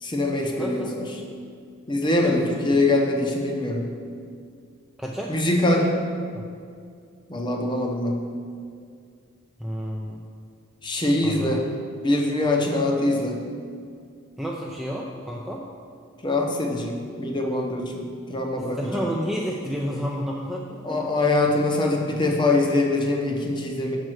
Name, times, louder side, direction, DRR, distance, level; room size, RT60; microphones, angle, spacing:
voice 1, 0.0-1.1 1.9-3.9 5.3-5.9 7.3-8.2 10.8-11.6 12.0-13.4 16.2-19.1 20.8-24.0, left 2 dB, 20° left, 1 dB, 0.7 m, -23 dB
voice 2, 0.6-0.9 2.2-2.6 5.0-5.3 5.7-5.8 6.3-6.5 9.6-10.2 11.2-11.6 14.4-15.6 18.6-21.0, equal, ahead, -3 dB, 0.4 m, -30 dB
6.5 x 4.5 x 6.3 m, 2.3 s
head